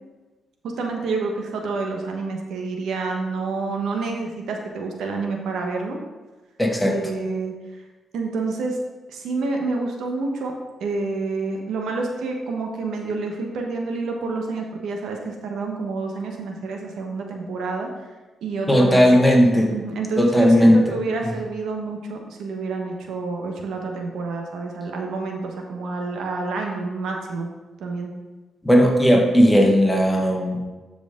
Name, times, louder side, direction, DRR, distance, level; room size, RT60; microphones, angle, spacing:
voice 1, 0.6-6.0 6.8-7.5 8.1-8.8 9.1-10.5 10.8-17.9 18.4-19.0 19.7-27.5 27.8-28.1, right 3 dB, 80° right, 2 dB, 1.3 m, -28 dB
voice 2, 6.6-7.0 18.7-19.7 20.2-20.8 28.6-30.6, equal, 5° left, 1 dB, 1.5 m, -16 dB
12.0 x 5.1 x 3.8 m, 1.2 s
cardioid pair, 90°, 0 cm